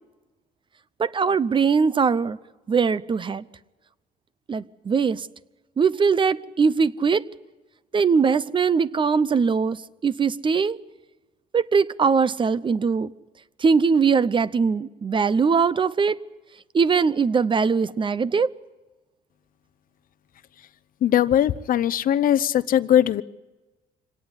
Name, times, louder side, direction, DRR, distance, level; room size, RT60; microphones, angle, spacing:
voice 1, 1.0-2.4 2.7-3.4 4.5-5.3 5.8-7.2 7.9-9.8 10.0-10.8 11.5-13.1 13.6-16.2 16.7-18.5, right 5 dB, 30° right, 17 dB, 0.7 m, -21 dB
voice 2, 21.0-23.2, left 11 dB, 55° left, 17 dB, 0.8 m, -20 dB
25.5 x 18.0 x 9.7 m, 1.2 s
cardioid pair, 110°, 17 cm